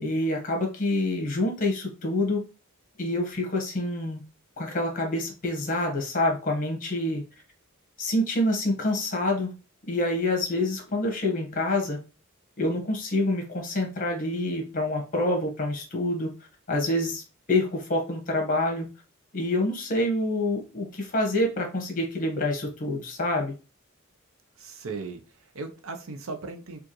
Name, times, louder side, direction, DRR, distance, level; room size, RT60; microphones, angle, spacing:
voice 1, 0.0-2.4 3.0-4.2 4.6-7.2 8.0-9.5 9.9-12.0 12.6-16.3 16.7-17.2 17.5-18.9 19.3-23.5, left 1 dB, 40° left, 2 dB, 1.2 m, -27 dB
voice 2, 24.6-26.8, right 3 dB, 75° right, 5 dB, 0.7 m, -37 dB
4.5 x 2.5 x 3.0 m, 0.33 s
head